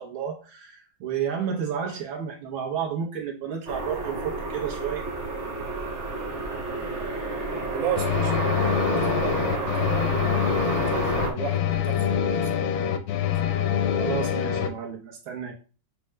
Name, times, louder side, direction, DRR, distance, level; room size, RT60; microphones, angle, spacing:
voice 1, 0.0-5.0 14.0-15.5, right 8 dB, 90° right, 1.9 m, -31 dB
sound 1, 3.7-11.3, right 2 dB, 45° right, 0.8 m, -30 dB
voice 2, 7.7-12.7, right 8 dB, 70° right, 0.8 m, -35 dB
sound 2, 8.0-14.7, left 9 dB, 80° left, 1.3 m, -25 dB
6.7 x 2.3 x 3.2 m
omnidirectional pair, 2.1 m